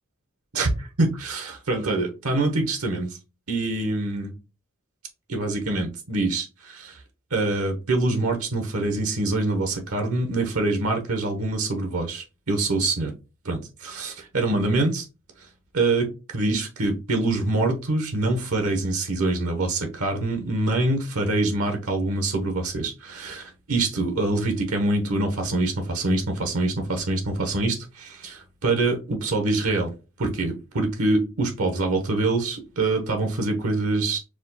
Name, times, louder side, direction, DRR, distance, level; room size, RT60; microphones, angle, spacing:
voice 1, 0.5-3.2 3.5-4.3 5.3-7.0 7.3-13.1 13.4-15.0 15.7-29.9 30.2-34.2, right 2 dB, 90° right, 1.0 m, -25 dB
4.9 x 2.3 x 4.0 m
head